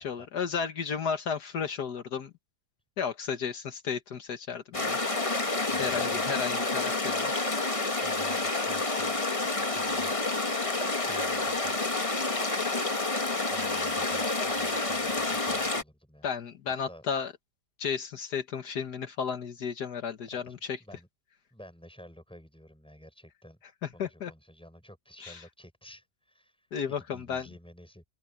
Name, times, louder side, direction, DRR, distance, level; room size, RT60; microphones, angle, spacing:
voice 1, 0.0-2.3 3.0-5.0 5.8-7.3 16.2-17.3 17.8-20.8 23.8-24.3 25.2-25.4 26.7-27.5, left 6 dB, 75° left, 1.9 m, -33 dB
sound 1, 4.7-15.8, left 3 dB, 20° left, 1.4 m, -29 dB
voice 2, 5.7-6.3 8.0-9.2 9.7-10.2 11.0-11.8 13.5-16.3 16.9-17.0 20.3-21.1 21.5-23.6 23.9-28.0, equal, 5° left, 6.7 m, -51 dB
omnidirectional pair, 1.7 m